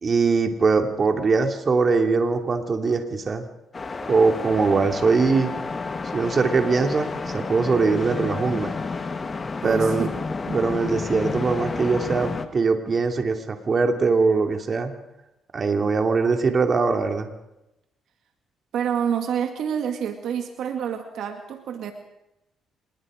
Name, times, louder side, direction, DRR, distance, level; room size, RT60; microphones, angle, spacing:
voice 1, 0.0-3.5 4.1-5.5 6.1-8.7 9.6-10.1 10.5-14.9 15.5-17.3, right 4 dB, 40° right, 5 dB, 2.8 m, -21 dB
sound 1, 3.7-12.5, left 4 dB, 35° left, 1.8 m, -30 dB
voice 2, 9.6-10.6 18.7-21.9, right 8 dB, 75° right, 5 dB, 2.1 m, -28 dB
26.5 x 20.5 x 5.1 m, 0.89 s
cardioid pair, 90°, 0 cm